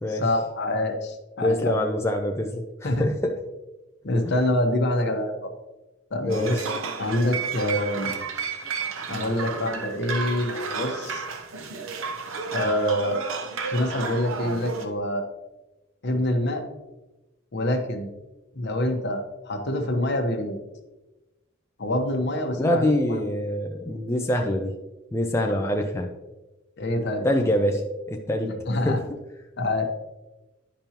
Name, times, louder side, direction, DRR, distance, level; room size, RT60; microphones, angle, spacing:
voice 1, 0.1-1.8 2.8-3.1 4.0-5.3 6.1-6.6 7.0-8.5 9.1-11.2 12.5-13.2 13.7-15.3 16.0-16.6 17.5-18.1 18.5-20.6 21.8-23.4 26.8-27.3 28.7-29.0 29.6-29.8, left 1 dB, 55° left, 4 dB, 1.1 m, -26 dB
voice 2, 1.4-3.4 6.2-6.6 22.6-24.8 25.1-26.1 27.2-28.6 28.8-29.0, left 1 dB, 15° left, 3 dB, 0.5 m, -25 dB
sound 1, 6.3-14.9, right 5 dB, 75° right, 0.8 m, -32 dB
10.5 x 5.3 x 2.9 m, 1.1 s
head